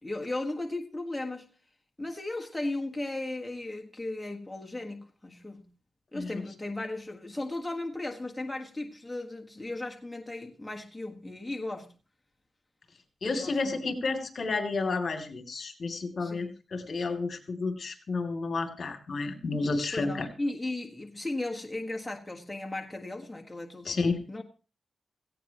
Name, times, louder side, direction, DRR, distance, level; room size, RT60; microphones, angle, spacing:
voice 1, 0.0-1.5 2.0-5.7 6.1-11.9 13.2-13.8 16.2-16.6 19.9-24.4, left 2 dB, 10° left, 1.6 m, -36 dB
voice 2, 13.2-20.3 23.9-24.2, left 3 dB, 50° left, 2.7 m, -31 dB
18.0 x 16.5 x 3.0 m
wide cardioid pair, 115°, 0 cm